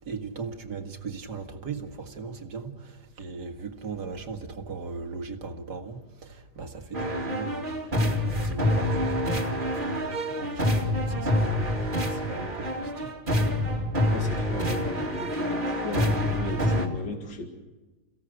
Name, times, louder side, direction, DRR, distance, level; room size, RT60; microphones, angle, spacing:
voice 1, 0.0-13.2, right 4 dB, 70° right, 2.4 m, -38 dB
sound 1, 6.9-16.9, left 1 dB, 30° right, 2.8 m, -27 dB
voice 2, 14.1-17.5, left 3 dB, 85° left, 2.8 m, -36 dB
29.0 x 16.5 x 6.5 m
omnidirectional pair, 1.9 m